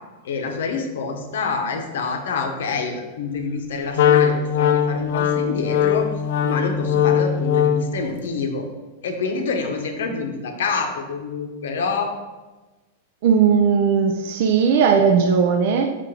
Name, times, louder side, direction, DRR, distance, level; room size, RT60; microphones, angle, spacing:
voice 1, 0.2-6.1 6.4-8.7 9.0-12.1, left 4 dB, 85° left, 4 dB, 1.0 m, -27 dB
Wind instrument woodwind instrument, 3.9-8.0, left 8 dB, 60° left, 0.5 m, -20 dB
voice 2, 13.2-15.9, right 6 dB, 45° right, 5 dB, 0.4 m, -17 dB
7.4 x 2.6 x 4.9 m, 1.2 s
supercardioid pair, 180°, 0 cm